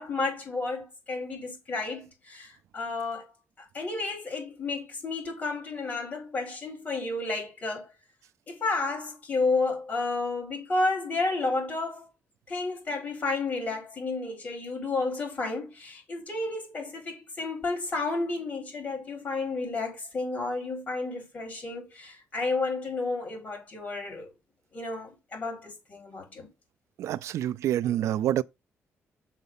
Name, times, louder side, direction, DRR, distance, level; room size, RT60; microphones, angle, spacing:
voice 1, 0.0-3.3 3.6-7.9 8.5-12.1 12.5-24.3 24.7-26.5, left 3 dB, 35° left, 4.4 m, -31 dB
voice 2, 27.0-28.4, right 12 dB, 80° right, 0.3 m, -27 dB
6.6 x 4.0 x 5.5 m
cardioid pair, 145°, 5 cm